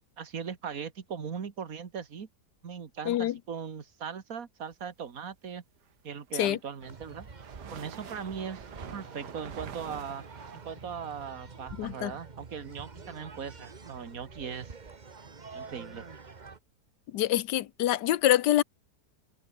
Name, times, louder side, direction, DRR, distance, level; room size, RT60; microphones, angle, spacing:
voice 1, 0.2-2.3 2.6-5.6 6.0-7.3 7.7-10.2 10.5-14.8 15.5-16.1, right 7 dB, 55° right, 2.1 m, -39 dB
sound 1, 6.1-11.2, right 8 dB, 80° right, 1.9 m, -47 dB
sound 2, 6.8-16.6, right 4 dB, 30° right, 1.3 m, -47 dB
voice 2, 11.8-12.1 17.1-18.6, left 13 dB, 85° left, 1.4 m, -25 dB
omnidirectional pair, 1.8 m